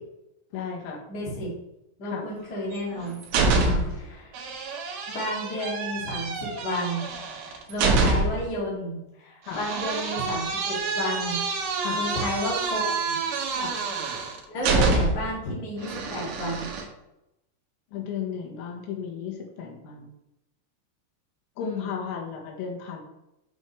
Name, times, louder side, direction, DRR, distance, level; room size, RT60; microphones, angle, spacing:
voice 1, 0.5-1.0 2.1-2.2 3.6-4.0 9.4-9.6 11.8-12.0 13.5-13.7 17.9-20.1 21.6-23.0, left 7 dB, 85° left, 0 dB, 4.1 m, -34 dB
voice 2, 1.1-1.5 2.0-3.2 3.6-4.3 5.1-7.0 7.4-11.4 11.9-13.2 14.5-16.7 21.6-21.9, equal, 30° left, -5 dB, 2.0 m, -32 dB
sound 1, 2.7-4.0 4.3-8.5 9.5-15.3 15.8-16.8, right 3 dB, 80° right, 1.9 m, -27 dB
8.4 x 7.1 x 3.3 m, 0.89 s
omnidirectional pair, 5.8 m